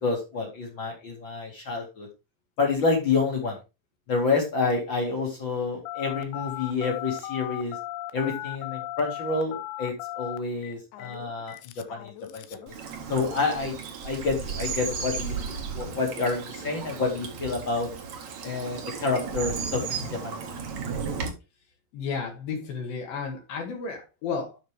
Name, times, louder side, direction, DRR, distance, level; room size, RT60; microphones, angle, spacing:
voice 1, 0.0-2.1 2.6-3.6 4.1-7.8 8.1-12.7 13.1-13.7 14.0-15.3 15.7-17.9 18.4-20.4, left 4 dB, 40° left, 1.9 m, -28 dB
Telephone, 5.9-12.7, left 15 dB, 85° left, 3.0 m, -37 dB
Bird vocalization bird call bird song / Stream, 12.7-21.3, right 6 dB, 55° right, 2.4 m, -34 dB
voice 2, 21.9-24.6, left 5 dB, 65° left, 3.1 m, -33 dB
12.0 x 5.2 x 3.4 m
omnidirectional pair, 5.0 m